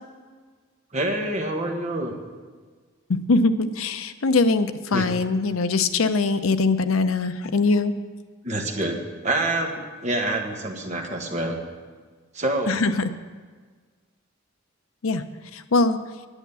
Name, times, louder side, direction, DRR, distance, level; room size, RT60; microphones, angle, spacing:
voice 1, 0.9-2.1 4.9-5.1 8.4-11.6 12.3-12.8, right 2 dB, 35° right, 2 dB, 1.3 m, -27 dB
voice 2, 3.1-7.9 12.7-13.1 15.0-15.2 15.5-16.0, left 3 dB, 80° left, 10 dB, 0.6 m, -22 dB
10.0 x 9.2 x 6.9 m, 1.5 s
head